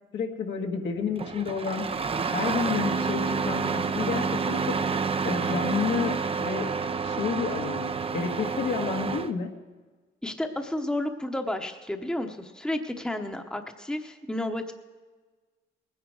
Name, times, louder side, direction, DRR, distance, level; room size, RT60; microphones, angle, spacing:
voice 1, 0.1-2.1 2.3-4.7 5.2-6.7 7.0-9.5, left 6 dB, 70° left, 2 dB, 1.7 m, -30 dB
Engine starting, 1.2-9.3, right 5 dB, 30° right, 0.6 m, -29 dB
voice 2, 10.2-14.7, left 1 dB, 5° left, 5 dB, 1.0 m, -31 dB
19.5 x 10.0 x 4.8 m, 1.4 s
cardioid pair, 90°, 20 cm